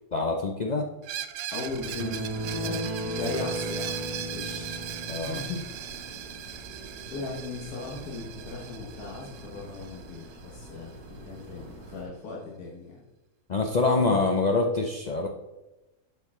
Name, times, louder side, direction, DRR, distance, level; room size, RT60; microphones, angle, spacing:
voice 1, 0.1-0.9 5.1-5.4 13.5-15.3, left 3 dB, 60° left, 1 dB, 0.4 m, -25 dB
Screech, 1.0-10.7, right 11 dB, 70° right, 0.8 m, -39 dB
voice 2, 1.5-4.7 5.2-5.6 5.9-6.4 7.1-13.0 13.9-14.0, left 3 dB, 85° left, -3 dB, 1.7 m, -38 dB
sound 1, 1.6-12.1, right 1 dB, 90° right, 2.4 m, -46 dB
sound 2, 2.0-5.5, right 1 dB, 35° right, 1.5 m, -34 dB
11.5 x 4.6 x 3.6 m, 1.0 s
omnidirectional pair, 1.6 m